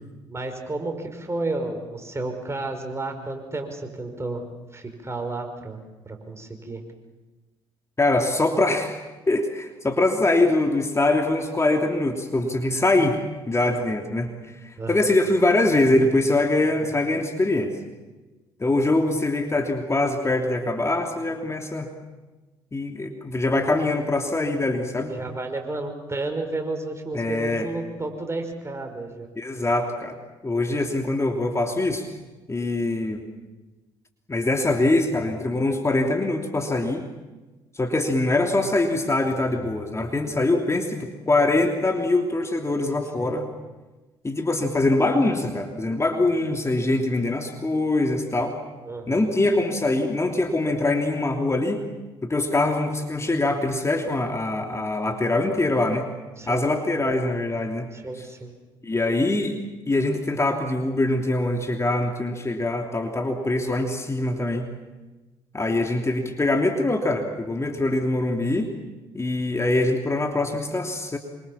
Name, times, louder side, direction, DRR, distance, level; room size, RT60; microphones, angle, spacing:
voice 1, 0.3-4.4 4.7-6.8 14.8-15.1 25.1-29.3 43.2-43.4 48.8-49.3 56.4-56.6 57.9-58.5, right 2 dB, 20° right, 4 dB, 5.5 m, -32 dB
voice 2, 8.0-9.0 9.3-13.2 13.5-14.3 14.6-17.7 18.6-21.9 22.7-25.1 27.1-27.7 29.4-30.2 30.4-32.1 32.5-33.2 34.3-37.1 37.7-43.5 44.2-48.6 49.1-51.8 52.2-56.1 56.5-57.9 58.8-59.6 59.8-64.7 65.5-68.7 69.1-71.2, left 2 dB, 25° left, 3 dB, 3.1 m, -23 dB
27.0 x 24.5 x 7.3 m, 1.2 s
hypercardioid pair, 50°, 12 cm